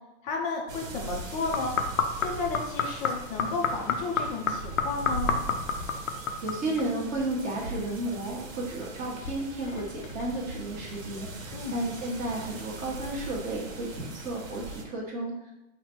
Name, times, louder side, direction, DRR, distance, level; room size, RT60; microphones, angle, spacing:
voice 1, 0.2-1.8 2.1-5.3 11.5-11.8, left 4 dB, 20° left, 1 dB, 0.5 m, -33 dB
sound 1, 0.7-14.9, right 2 dB, 80° right, 0.9 m, -40 dB
sound 2, 1.5-7.0 7.2-8.2 8.6-10.5 11.1-11.2, left 5 dB, 80° left, 0.6 m, -31 dB
voice 2, 6.4-15.5, right 2 dB, 20° right, -3 dB, 1.1 m, -33 dB
3.8 x 2.2 x 4.4 m, 0.95 s
hypercardioid pair, 130°, 38 cm